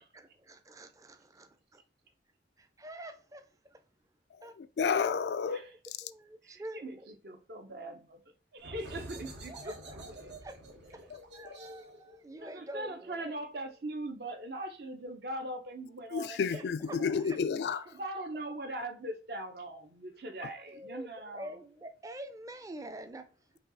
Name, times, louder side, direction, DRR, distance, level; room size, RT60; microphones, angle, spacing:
voice 1, 0.1-1.8 2.6-3.8 4.4-4.6 5.5-6.9 9.5-10.0 10.4-10.5 11.1-13.3 16.5-17.4 17.7-17.9 20.6-21.1 21.3-23.6, right 1 dB, 20° right, 0.5 m, -47 dB
voice 2, 4.6-5.7 11.4-11.6 16.1-17.8, left 6 dB, 70° left, 0.3 m, -31 dB
voice 3, 6.4-10.3 12.4-17.2 17.9-21.6, right 1 dB, 60° right, 0.8 m, -41 dB
sound 1, 8.6-14.0, right 1 dB, 85° right, 1.2 m, -49 dB
5.5 x 2.3 x 4.0 m
head